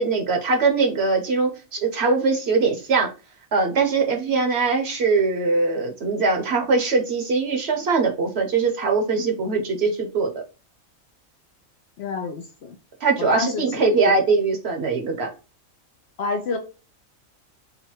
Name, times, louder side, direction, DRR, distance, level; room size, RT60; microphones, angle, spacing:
voice 1, 0.0-3.1 3.5-10.4 13.0-15.3, right 4 dB, 55° right, 4 dB, 1.0 m, -21 dB
voice 2, 12.0-12.8 13.2-14.1 16.2-16.6, left 4 dB, 65° left, 4 dB, 0.7 m, -28 dB
3.9 x 2.2 x 4.3 m, 0.31 s
omnidirectional pair, 1.4 m